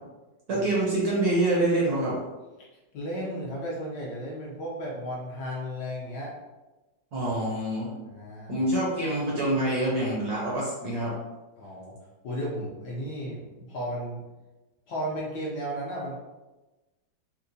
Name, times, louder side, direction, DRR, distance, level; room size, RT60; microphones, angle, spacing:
voice 1, 0.5-2.1 7.1-8.0 8.5-11.1, right 1 dB, 65° right, -5 dB, 1.0 m, -26 dB
voice 2, 2.9-6.3 8.0-8.6 11.6-11.9 12.2-14.2 14.9-16.2, equal, 65° left, -5 dB, 1.1 m, -34 dB
4.4 x 2.1 x 2.6 m, 1.1 s
omnidirectional pair, 2.2 m